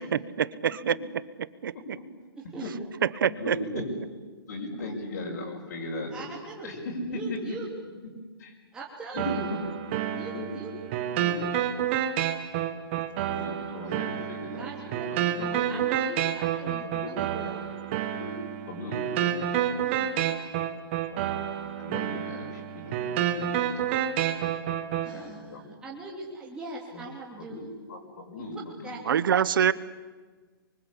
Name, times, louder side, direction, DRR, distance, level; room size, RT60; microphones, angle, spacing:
voice 1, 0.4-0.9 1.6-1.7 3.2-3.6 29.1-29.7, right 8 dB, 55° right, 17 dB, 1.1 m, -24 dB
voice 2, 2.4-2.7 6.1-6.8 7.1-7.7 8.7-9.5 10.1-10.7 14.6-15.1 15.4-17.6 19.8-20.1 25.0-27.6 28.8-29.2, right 2 dB, 5° right, -5 dB, 2.6 m, -41 dB
voice 3, 3.2-3.8 4.5-6.3 6.6-7.4 8.4-8.6 9.1-9.6 10.3-10.5 11.2-11.5 13.2-15.8 16.8-17.1 17.4-17.8 18.0-18.4 18.7-20.3 21.1-21.4 21.8-24.2 24.6-24.7 25.1-25.6 26.9-27.1 27.4-29.0, left 2 dB, 45° left, -3 dB, 6.0 m, -38 dB
sound 1, 9.2-25.2, right 10 dB, 25° right, 1.5 m, -29 dB
26.0 x 24.5 x 8.4 m, 1.4 s
hypercardioid pair, 170°, 13 cm